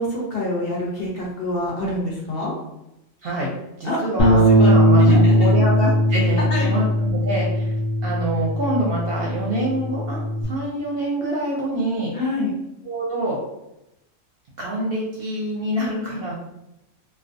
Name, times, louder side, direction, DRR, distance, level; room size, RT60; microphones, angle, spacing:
voice 1, 0.0-2.5 3.8-5.5 6.5-6.7 12.1-12.5, left 1 dB, 55° left, -4 dB, 0.7 m, -27 dB
voice 2, 3.8-7.7 8.0-12.1 12.9-13.4 14.6-16.3, right 1 dB, 60° right, -3 dB, 0.7 m, -26 dB
Bass guitar, 4.2-10.4, equal, 85° left, 1.0 m, -18 dB
2.3 x 2.2 x 2.5 m, 0.87 s
omnidirectional pair, 1.3 m